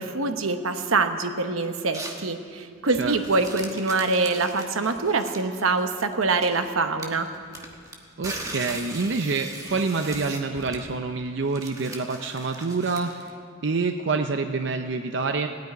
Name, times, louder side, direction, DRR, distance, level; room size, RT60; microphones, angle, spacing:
voice 1, 0.0-7.3, right 3 dB, 85° right, 7 dB, 1.0 m, -25 dB
sound 1, 1.9-2.3 2.8-6.7 7.0-13.3, right 2 dB, 15° right, 1.2 m, -39 dB
voice 2, 8.2-13.3 13.6-15.5, right 4 dB, 60° right, 6 dB, 0.6 m, -27 dB
16.0 x 9.3 x 9.4 m, 2.2 s
head